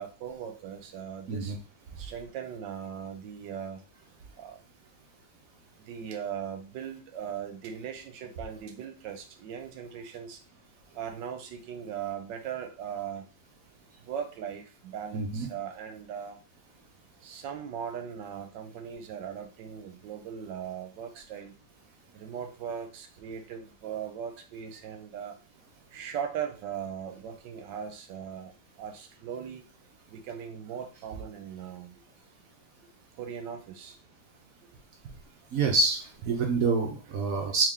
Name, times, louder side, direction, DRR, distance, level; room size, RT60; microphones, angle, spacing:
voice 1, 0.0-1.6 2.0-3.8 4.4-4.6 5.9-10.4 10.9-13.2 14.0-16.4 17.2-21.5 22.1-25.4 25.9-29.7 30.1-32.0 33.2-34.0, right 8 dB, 85° right, 7 dB, 1.3 m, -39 dB
voice 2, 15.1-15.5 35.5-37.7, right 3 dB, 65° right, 2 dB, 0.9 m, -27 dB
3.6 x 2.9 x 3.5 m, 0.35 s
omnidirectional pair, 2.0 m